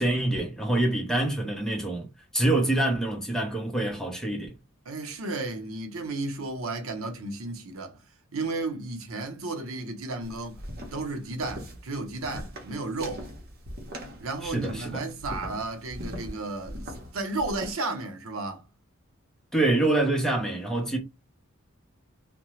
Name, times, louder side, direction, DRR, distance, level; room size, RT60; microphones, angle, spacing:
voice 1, 0.0-4.5 14.4-15.0 19.5-21.0, right 2 dB, 5° left, 0.8 m, -26 dB
voice 2, 4.9-8.0 8.3-10.6 10.9-13.3 14.2-18.7, right 2 dB, 80° right, 0.8 m, -33 dB
sound 1, 10.2-17.7, equal, 50° right, 0.9 m, -41 dB
2.7 x 2.1 x 3.1 m
head